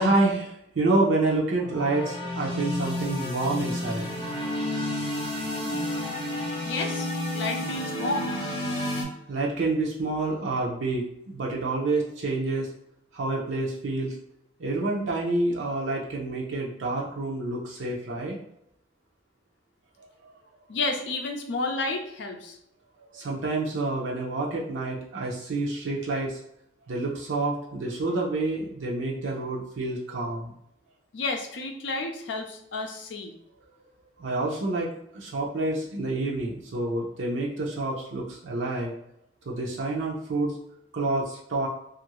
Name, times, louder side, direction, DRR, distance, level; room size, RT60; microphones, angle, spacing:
voice 1, 0.0-4.1 9.3-12.7 13.1-14.2 14.6-18.4 20.2-20.4 23.1-26.4 26.9-30.5 34.2-38.9 39.5-40.5 40.9-41.7, right 2 dB, 90° right, -3 dB, 0.5 m, -28 dB
sound 1, 1.5-9.0, left 1 dB, 25° left, 0.6 m, -31 dB
voice 2, 6.6-8.4 20.7-22.6 31.1-33.3, left 3 dB, 75° left, 3 dB, 0.5 m, -31 dB
2.7 x 2.5 x 2.9 m, 0.75 s
head